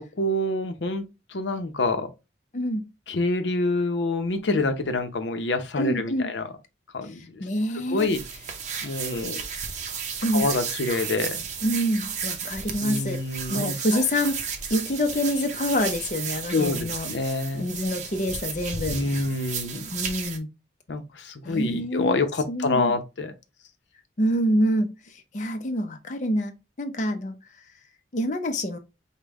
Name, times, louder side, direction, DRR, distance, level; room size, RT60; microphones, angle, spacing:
voice 1, 0.2-1.0 1.3-2.1 3.1-6.5 6.9-7.4 7.9-8.2 8.8-9.4 10.3-11.4 12.8-14.0 16.5-17.7 18.9-19.9 20.9-23.3, left 2 dB, 85° left, 0.7 m, -27 dB
voice 2, 2.5-2.9 5.8-6.3 7.4-8.1 10.2-10.5 11.6-13.2 13.5-14.4 14.7-17.1 17.5-19.0 19.9-20.5 21.4-22.9 24.2-24.9 25.3-26.5 26.8-27.4 28.1-28.8, equal, 45° left, 0.6 m, -26 dB
sound 1, 8.0-20.4, right 6 dB, 40° right, 0.6 m, -33 dB
5.2 x 2.2 x 3.4 m
head